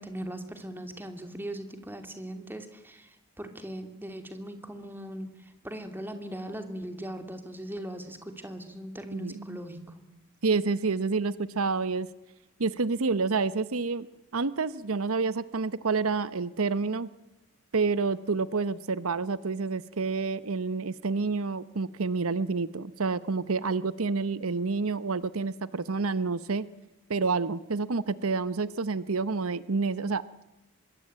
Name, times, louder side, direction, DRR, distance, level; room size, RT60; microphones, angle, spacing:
voice 1, 0.0-5.3 5.6-10.0, right 1 dB, 10° right, 6 dB, 2.8 m, -39 dB
voice 2, 9.1-9.6 10.4-12.1 12.6-14.1 14.3-17.1 17.7-26.7 27.1-30.4, right 4 dB, 80° right, 15 dB, 0.9 m, -28 dB
25.0 x 22.5 x 8.9 m, 0.96 s
head